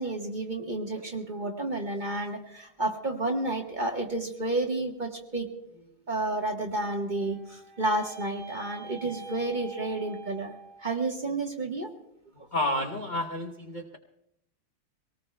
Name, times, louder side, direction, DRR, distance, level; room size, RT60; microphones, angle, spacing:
voice 1, 0.0-10.5 10.8-11.9 12.4-12.5, right 2 dB, 30° right, 1 dB, 1.1 m, -31 dB
sound 1, 6.7-11.0, right 5 dB, 55° right, 2.8 m, -46 dB
voice 2, 12.5-14.0, left 1 dB, 55° left, 4 dB, 0.5 m, -30 dB
24.5 x 18.5 x 2.2 m, 0.78 s
omnidirectional pair, 2.2 m